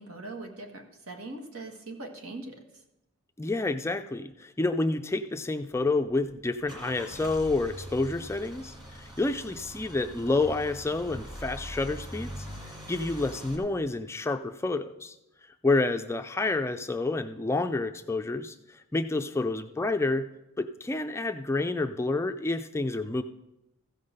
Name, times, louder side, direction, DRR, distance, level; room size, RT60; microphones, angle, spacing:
voice 1, 0.0-2.8, right 2 dB, 80° right, 3 dB, 1.6 m, -41 dB
voice 2, 3.4-12.5 12.9-15.1 15.6-20.3 20.6-23.2, left 2 dB, 10° left, 8 dB, 0.3 m, -29 dB
Car / Engine starting / Idling, 6.1-13.6, equal, 20° right, 2.0 m, -42 dB
14.5 x 5.5 x 6.6 m, 0.90 s
head